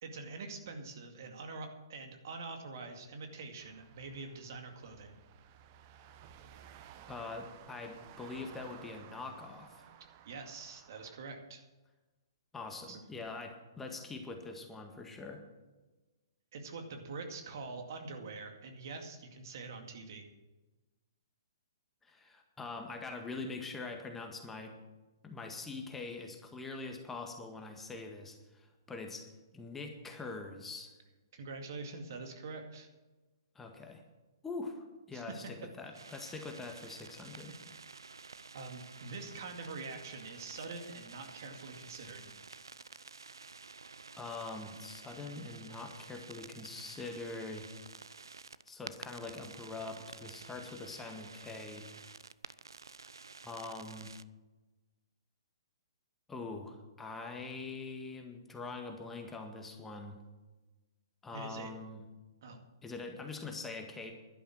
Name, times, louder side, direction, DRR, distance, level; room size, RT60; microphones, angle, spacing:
voice 1, 0.0-5.2 10.2-11.6 12.9-13.0 16.5-20.3 31.3-32.9 35.1-35.7 37.3-37.4 38.5-42.3 61.3-61.7 62.4-62.6, right 3 dB, 50° right, 4 dB, 2.2 m, -45 dB
sound 1, 3.6-11.2, right 9 dB, 35° right, 1.0 m, -56 dB
voice 2, 7.1-9.9 12.5-15.4 22.0-24.7 25.2-29.3 29.5-30.9 33.6-34.0 34.4-37.5 44.2-47.7 48.7-51.9 53.4-54.1 56.3-60.2 61.2-62.0 62.8-64.1, left 3 dB, 10° left, 3 dB, 1.7 m, -43 dB
sound 2, 35.9-54.2, right 4 dB, 75° right, 0.5 m, -51 dB
12.0 x 11.0 x 6.2 m, 1.1 s
figure-of-eight pair, 125°, 2 cm